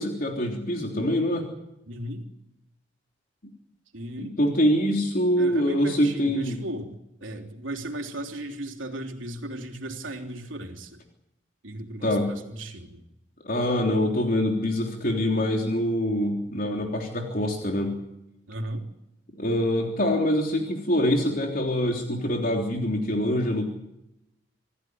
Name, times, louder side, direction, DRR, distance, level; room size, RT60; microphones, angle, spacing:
voice 1, 0.0-1.5 4.2-6.6 12.0-12.3 13.4-18.0 19.4-23.6, equal, 45° left, 2 dB, 3.5 m, -25 dB
voice 2, 1.9-2.2 3.9-4.4 5.3-6.9 7.2-11.0 11.6-13.0 18.5-18.8, right 1 dB, 85° right, 3 dB, 3.5 m, -36 dB
26.5 x 15.0 x 9.6 m, 0.86 s
head